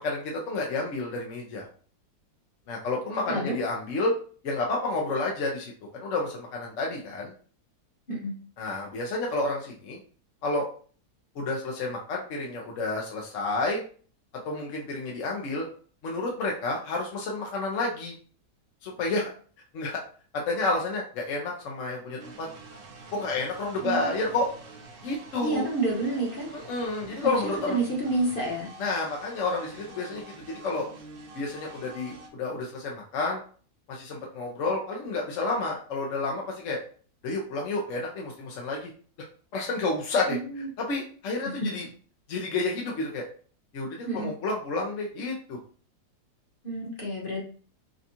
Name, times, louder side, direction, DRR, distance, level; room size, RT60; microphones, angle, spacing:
voice 1, 0.0-1.7 2.7-4.1 4.4-7.3 8.6-10.0 10.4-10.7 11.4-13.8 14.4-15.7 16.0-18.2 18.8-19.3 19.7-20.0 20.5-22.5 23.1-24.5 25.0-25.6 26.5-27.8 28.8-30.9 31.3-33.4 33.9-36.8 37.2-38.9 39.5-40.4 40.8-41.8 42.3-43.3 43.7-45.6, left 3 dB, 60° left, -1 dB, 0.9 m, -30 dB
sound 1, 22.2-32.3, right 3 dB, 70° right, 0.5 m, -47 dB
voice 2, 23.8-24.2 25.4-26.5 27.2-28.7 40.3-40.7 44.1-44.3 46.6-47.4, right 2 dB, 35° left, -3 dB, 1.1 m, -29 dB
5.1 x 2.3 x 2.7 m, 0.43 s
omnidirectional pair, 1.8 m